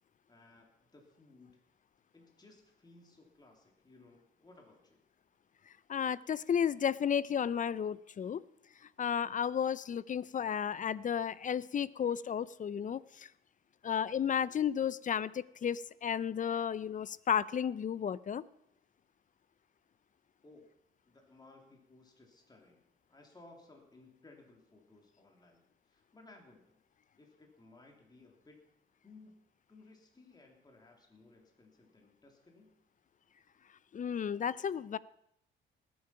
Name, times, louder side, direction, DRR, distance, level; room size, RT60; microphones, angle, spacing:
voice 1, 0.3-0.7 0.9-1.6 2.1-5.0 20.4-20.7 21.0-22.8 23.1-26.8 27.2-28.6 29.0-29.3 29.7-32.7, left 2 dB, 20° left, 1 dB, 3.0 m, -59 dB
voice 2, 5.9-8.4 9.0-13.3 13.8-18.4 33.9-35.0, left 8 dB, 40° left, 19 dB, 0.5 m, -33 dB
19.5 x 8.7 x 5.8 m, 0.76 s
cardioid pair, 90°, 20 cm